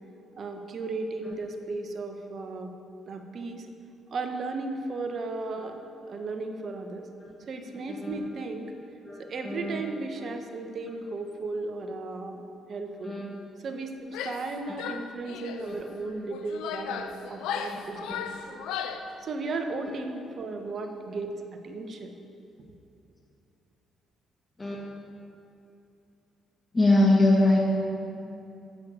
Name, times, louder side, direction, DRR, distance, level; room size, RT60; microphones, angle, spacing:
voice 1, 0.4-2.7 3.1-3.7 4.1-5.8 6.1-7.1 7.5-8.7 9.2-12.4 12.7-13.2 13.6-18.6 19.2-21.3 21.6-22.2, right 3 dB, 55° right, 5 dB, 1.2 m, -35 dB
voice 2, 9.4-9.8 13.0-13.2 15.6-15.7 17.7-18.2 24.6-24.8 26.7-27.6, left 2 dB, 25° left, -2 dB, 1.8 m, -23 dB
Female speech woman speaking / Yell, 14.1-14.5 14.8-15.6 16.3-19.1, left 7 dB, 80° left, 0.6 m, -35 dB
9.7 x 7.8 x 7.6 m, 2.7 s
supercardioid pair, 55°, 0 cm